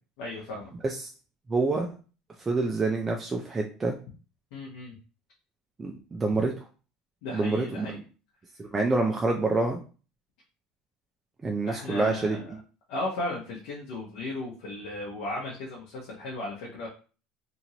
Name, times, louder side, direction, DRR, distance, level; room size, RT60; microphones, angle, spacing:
voice 1, 0.2-0.7 4.5-4.9 7.2-8.0 11.7-12.5 12.9-16.9, left 2 dB, 75° left, -3 dB, 0.8 m, -35 dB
voice 2, 1.5-1.9 2.5-4.0 5.8-6.5 7.3-7.9 8.6-9.8 11.4-12.4, right 3 dB, 20° right, 1 dB, 0.4 m, -27 dB
2.9 x 2.6 x 2.8 m, 0.37 s
supercardioid pair, 100°, 0 cm